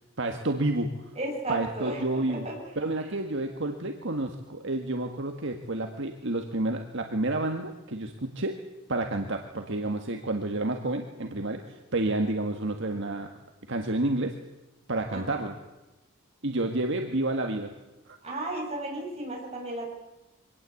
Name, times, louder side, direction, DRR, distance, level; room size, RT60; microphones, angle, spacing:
voice 1, 0.2-0.9 1.5-2.5 2.8-8.6 8.9-13.3 13.7-14.3 14.9-15.5 16.4-17.7 18.1-18.2, right 2 dB, 60° right, 4 dB, 1.7 m, -30 dB
voice 2, 1.2-2.6 3.0-3.1 15.1-15.4 18.2-19.9, right 1 dB, 30° right, -1 dB, 7.3 m, -34 dB
24.0 x 18.5 x 8.4 m, 1.0 s
head